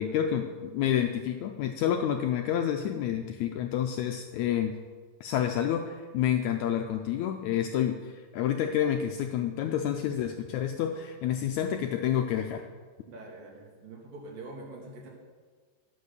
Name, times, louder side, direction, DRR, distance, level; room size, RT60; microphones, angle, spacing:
voice 1, 0.0-4.8 5.2-12.7, left 10 dB, 90° left, 5 dB, 1.6 m, -29 dB
voice 2, 13.1-15.1, right 2 dB, 75° right, -2 dB, 4.0 m, -45 dB
12.0 x 7.9 x 6.6 m, 1.5 s
omnidirectional pair, 4.0 m